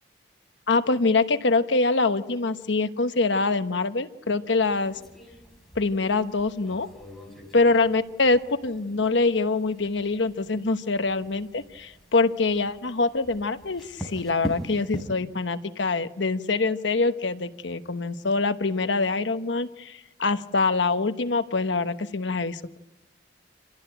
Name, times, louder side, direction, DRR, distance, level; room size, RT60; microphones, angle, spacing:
voice 1, 0.7-4.9 5.8-6.9 7.5-22.8, left 3 dB, 75° left, 10 dB, 1.1 m, -24 dB
sound 1, 4.6-15.0, equal, ahead, 4.5 m, -42 dB
27.0 x 16.0 x 8.9 m, 1.0 s
head